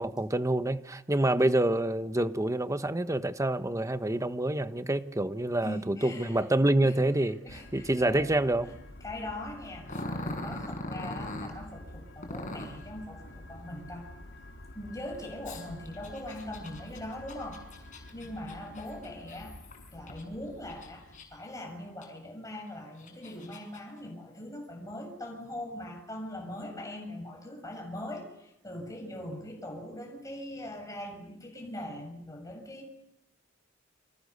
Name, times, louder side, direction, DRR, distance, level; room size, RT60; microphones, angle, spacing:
voice 1, 0.0-7.4 7.7-8.7, right 1 dB, 15° right, 1.3 m, -27 dB
voice 2, 5.6-6.4 6.8-8.3 8.6-8.8 9.0-9.9 10.3-14.1 14.8-19.6 19.9-32.9, left 1 dB, 15° left, 6.8 m, -41 dB
sound 1, 7.5-21.2, left 1 dB, 65° left, 5.3 m, -49 dB
Growling, 9.9-11.5 12.2-12.8 15.4-20.2 20.7-21.5 22.0-22.1 22.8-23.8, left 1 dB, 40° left, 7.0 m, -40 dB
29.5 x 26.0 x 6.8 m
head